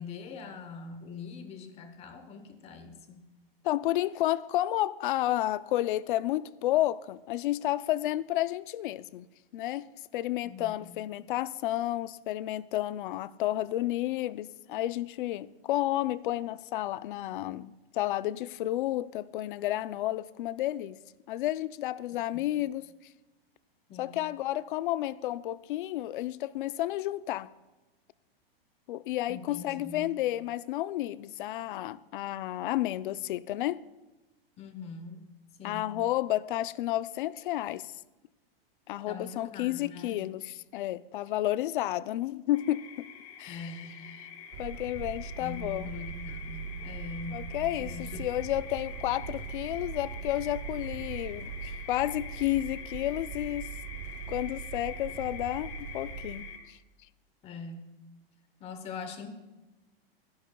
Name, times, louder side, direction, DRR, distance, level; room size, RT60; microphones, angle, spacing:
voice 1, 0.0-3.2 10.4-10.8 22.3-22.4 23.9-24.2 29.3-30.1 34.6-35.2 35.6-35.9 39.1-40.2 43.5-44.0 45.4-47.5 47.8-48.3 57.4-57.9 58.6-59.3, left 5 dB, 20° left, 1.0 m, -43 dB
voice 2, 3.6-9.3 9.5-9.8 10.1-21.0 21.3-22.8 24.0-27.5 28.9-33.8 35.6-37.9 38.9-43.1 43.4-43.7 44.6-45.9 47.3-53.7 54.3-56.8, left 14 dB, 55° left, 0.5 m, -31 dB
sound 1, 42.5-56.6, left 7 dB, 90° left, 2.2 m, -45 dB
sound 2, 44.5-56.4, right 7 dB, 45° right, 1.0 m, -41 dB
23.0 x 10.5 x 2.3 m
supercardioid pair, 160°, 30 cm